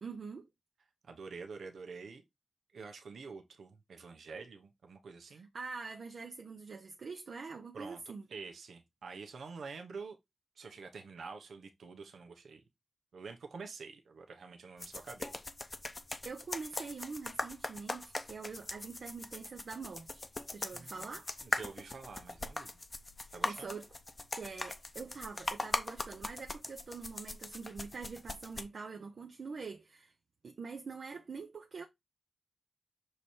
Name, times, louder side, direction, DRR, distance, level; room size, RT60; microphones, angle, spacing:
voice 1, 0.0-0.5 5.3-8.2 16.2-20.2 20.5-21.3 23.4-23.8 24.3-30.1 30.4-31.9, right 4 dB, 55° right, 0.7 m, -44 dB
voice 2, 1.1-2.2 2.7-5.5 7.7-10.2 10.6-12.6 13.1-15.3 20.7-21.1 21.4-22.7 23.3-23.8, right 4 dB, 85° right, 1.0 m, -47 dB
sound 1, 14.8-28.6, left 2 dB, 25° left, 0.7 m, -40 dB
6.8 x 3.3 x 4.3 m
wide cardioid pair, 180°, 0 cm